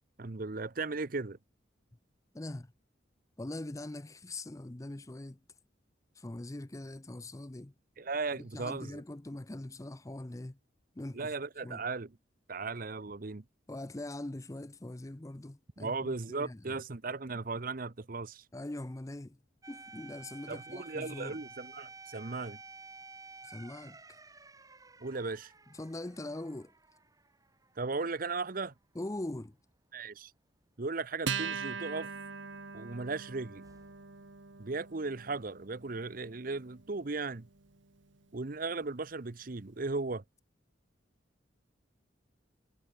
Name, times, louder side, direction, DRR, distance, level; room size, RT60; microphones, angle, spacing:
voice 1, 0.2-1.4 8.0-9.0 11.1-12.1 12.5-13.4 15.8-18.4 20.5-22.6 25.0-25.5 27.8-28.7 29.9-30.3 30.8-32.1 32.7-33.7 34.6-37.5 38.3-40.2, right 3 dB, 50° right, 0.8 m, -36 dB
voice 2, 2.3-2.7 3.4-5.4 6.2-7.7 8.3-10.6 11.0-11.3 11.6-11.8 13.7-16.8 18.5-19.4 19.7-21.4 23.4-24.0 25.7-26.7 28.9-29.6, left 1 dB, 15° left, 0.6 m, -42 dB
sound 1, 19.6-28.3 28.6-28.7 33.6-34.2, right 3 dB, 20° right, 2.6 m, -52 dB
Acoustic guitar, 31.3-38.1, right 5 dB, 80° right, 1.7 m, -41 dB
head